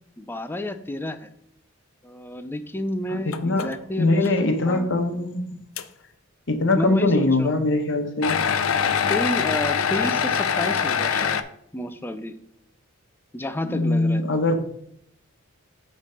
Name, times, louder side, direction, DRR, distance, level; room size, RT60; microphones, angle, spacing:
voice 1, 0.2-1.3 2.0-4.3 4.6-4.9 6.8-7.5 9.1-11.4 11.7-12.4 13.3-14.2, left 1 dB, 10° left, 10 dB, 0.4 m, -30 dB
voice 2, 3.1-3.7 4.0-5.6 6.5-8.4 13.7-14.5, left 2 dB, 60° left, 6 dB, 1.0 m, -22 dB
sound 1, 3.3-3.7 4.2-4.3 4.9-5.0 5.8-5.9 8.2-11.4, left 7 dB, 80° left, 0.5 m, -23 dB
8.3 x 3.3 x 5.6 m, 0.72 s
head